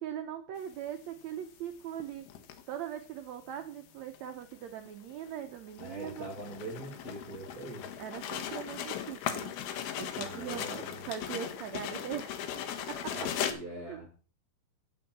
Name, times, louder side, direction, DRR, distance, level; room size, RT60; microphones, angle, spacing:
voice 1, 0.0-2.2 2.7-6.3 8.0-9.5 10.0-12.3 12.9-14.1, right 10 dB, 85° right, 7 dB, 1.5 m, -41 dB
sound 1, 0.7-0.8 2.0-2.8 3.1-3.2 3.6-3.7 4.1-4.5 4.9-13.5, left 9 dB, 90° left, 3.0 m, -38 dB
voice 2, 5.8-7.9 10.1-11.0 13.1-14.1, right 2 dB, 40° right, 3 dB, 1.5 m, -43 dB
8.9 x 8.2 x 6.0 m, 0.39 s
omnidirectional pair, 4.3 m